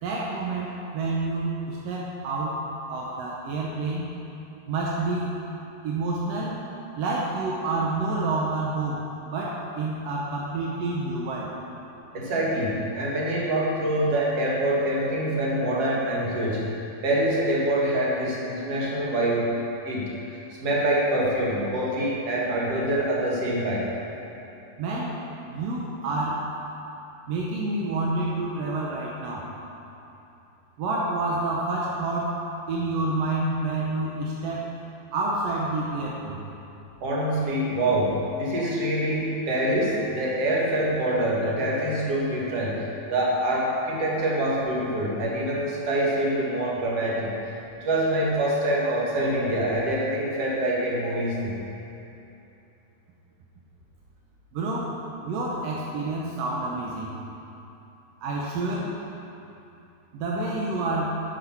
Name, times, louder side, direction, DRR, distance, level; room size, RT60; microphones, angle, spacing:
voice 1, 0.0-2.6 2.9-4.1 4.7-5.3 5.8-6.6 7.0-11.5 24.8-25.2 25.5-26.4 27.3-29.5 30.8-32.4 32.7-34.7 35.1-36.4 54.5-54.9 55.2-57.2 58.2-58.9 60.1-61.2, right 2 dB, 70° right, -3 dB, 1.6 m, -28 dB
voice 2, 12.1-19.5 19.9-23.8 37.0-51.6, right 1 dB, 55° right, -5 dB, 2.6 m, -25 dB
10.0 x 6.5 x 5.7 m, 2.9 s
omnidirectional pair, 3.6 m